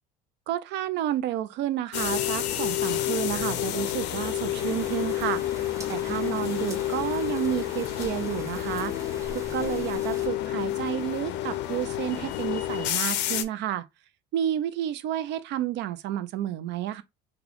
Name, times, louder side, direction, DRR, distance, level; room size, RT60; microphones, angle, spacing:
voice 1, 0.5-5.4 5.9-13.9 14.3-17.0, right 11 dB, 60° right, 0.5 m, -31 dB
sound 1, 1.9-13.4, left 13 dB, 60° left, 0.5 m, -29 dB
sound 2, 4.5-10.3, right 2 dB, 15° right, 0.9 m, -43 dB
3.6 x 2.3 x 3.3 m
cardioid pair, 120°, 20 cm